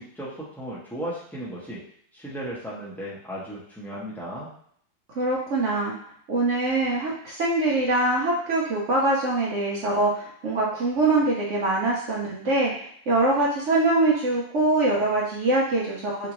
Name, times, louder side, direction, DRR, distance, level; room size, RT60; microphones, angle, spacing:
voice 1, 0.0-1.8 2.1-4.5, equal, 5° left, -8 dB, 0.3 m, -35 dB
voice 2, 5.1-5.9 6.3-12.7 13.1-16.3, right 2 dB, 65° right, -3 dB, 0.7 m, -23 dB
3.6 x 2.6 x 3.0 m, 0.63 s
omnidirectional pair, 2.1 m